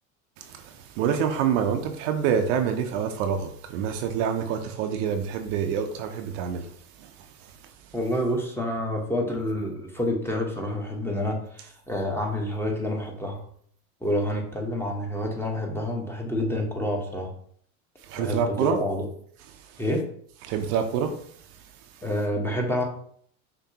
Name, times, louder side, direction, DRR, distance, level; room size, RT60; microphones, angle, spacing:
voice 1, 0.4-6.7 7.0-7.5 18.0-18.8 20.4-21.1, right 7 dB, 60° right, 0.8 m, -27 dB
voice 2, 7.9-13.4 14.0-17.3 18.2-19.1 19.8-20.0 22.0-22.8, left 1 dB, 5° left, 1.1 m, -28 dB
5.9 x 2.9 x 2.8 m
hypercardioid pair, 95°, 43 cm